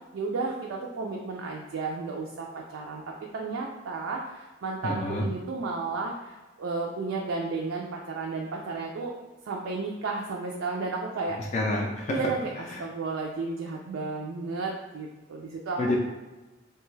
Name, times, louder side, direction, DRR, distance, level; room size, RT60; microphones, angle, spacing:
voice 1, 0.1-3.0 3.3-9.1 9.5-11.4 12.1-16.0, right 3 dB, 80° right, -1 dB, 0.4 m, -33 dB
voice 2, 4.8-5.3 11.3-12.2 12.7-12.8 15.8-16.0, left 2 dB, 35° left, -1 dB, 0.3 m, -28 dB
3.2 x 2.2 x 3.1 m, 1.1 s
head